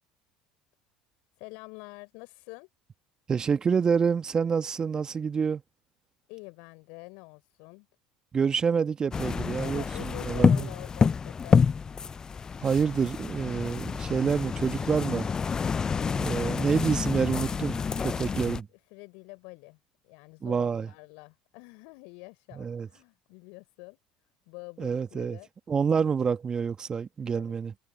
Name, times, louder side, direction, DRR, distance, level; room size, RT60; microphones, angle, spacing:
voice 1, 1.4-2.7 6.3-7.9 9.6-11.7 16.3-16.7 18.2-18.5 18.9-24.0 24.4-25.5 27.3-27.5, left 31 dB, 65° left, 4.4 m, -46 dB
voice 2, 3.3-5.6 8.3-10.7 12.6-15.3 16.2-18.6 20.4-20.9 22.5-22.9 24.8-25.4 25.7-27.7, right 6 dB, 30° right, 1.4 m, -27 dB
sound 1, 9.1-18.6, left 6 dB, 30° left, 0.6 m, -28 dB
hypercardioid pair, 65°, 2 cm